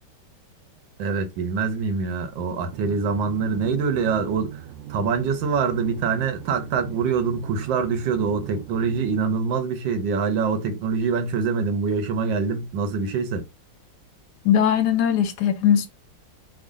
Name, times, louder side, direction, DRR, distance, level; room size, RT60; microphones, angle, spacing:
voice 1, 1.0-4.6 4.9-13.4, right 5 dB, 85° right, 1.5 m, -24 dB
sound 1, 2.7-9.2, right 11 dB, 70° right, 0.8 m, -40 dB
voice 2, 14.4-15.9, left 9 dB, 75° left, 1.0 m, -19 dB
3.6 x 2.2 x 3.5 m
omnidirectional pair, 2.0 m